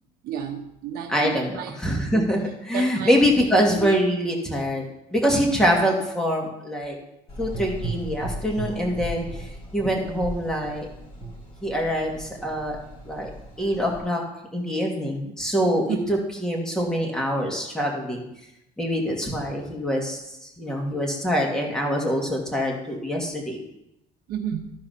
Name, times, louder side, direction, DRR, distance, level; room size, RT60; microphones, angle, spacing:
voice 1, 0.2-1.7 2.1-2.2 2.7-3.2 3.8-3.9 15.9-16.1 24.3-24.7, right 8 dB, 70° right, 4 dB, 0.9 m, -31 dB
voice 2, 1.1-7.0 7.4-10.9 11.6-12.8 13.1-13.3 13.6-14.2 14.5-18.2 18.8-23.6, equal, 5° left, -1 dB, 2.3 m, -24 dB
Gurgling / Engine, 7.3-14.0, right 1 dB, 35° left, 4.5 m, -36 dB
14.0 x 4.8 x 5.7 m, 0.85 s
cardioid pair, 120°, 16 cm